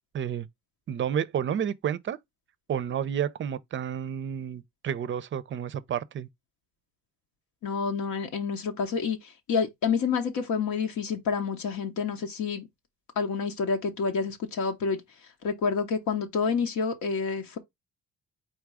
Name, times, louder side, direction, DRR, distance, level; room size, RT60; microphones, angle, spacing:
voice 1, 0.1-0.5 0.9-2.2 2.7-6.3, right 9 dB, 40° right, 0.5 m, -30 dB
voice 2, 7.6-12.7 13.2-15.0 15.4-17.6, left 5 dB, 75° left, 0.8 m, -28 dB
4.3 x 2.3 x 4.7 m
cardioid pair, 90°, 30 cm